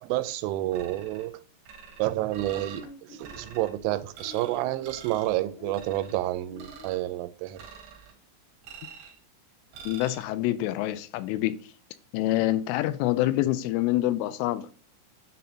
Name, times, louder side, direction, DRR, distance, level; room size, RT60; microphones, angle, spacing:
voice 1, 0.0-1.4 2.0-7.7, right 15 dB, 85° right, 3.1 m, -29 dB
sound 1, 0.7-1.3 1.7-2.9 3.2-3.7 4.1-4.6 4.8-5.4 5.7-6.2 6.6-7.0 7.6-8.1 8.6-9.2 9.7-10.2, right 6 dB, 65° right, 3.0 m, -46 dB
sound 2, 1.9-6.9, left 2 dB, 70° left, 3.4 m, -49 dB
voice 2, 9.9-11.6 12.1-14.7, left 15 dB, 90° left, 3.1 m, -26 dB
9.9 x 4.2 x 2.8 m
omnidirectional pair, 5.6 m